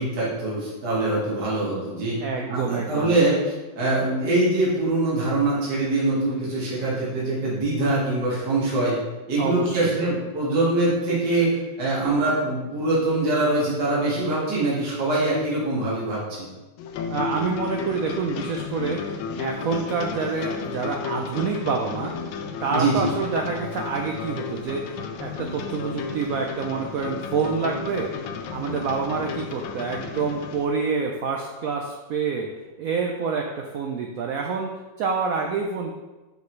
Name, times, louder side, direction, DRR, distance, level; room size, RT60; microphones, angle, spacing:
voice 1, 0.0-2.2 2.5-9.0 9.3-16.5 22.7-23.1, right 2 dB, 60° right, -7 dB, 2.2 m, -23 dB
voice 2, 2.2-3.2 9.4-9.9 17.1-22.1 22.6-24.9 25.2-28.1 28.5-32.5 32.8-34.7 35.0-35.9, right 5 dB, 90° right, 1 dB, 0.7 m, -27 dB
sound 1, 16.8-30.7, left 5 dB, 85° left, 1.4 m, -33 dB
6.5 x 5.2 x 3.1 m, 1.1 s
omnidirectional pair, 2.1 m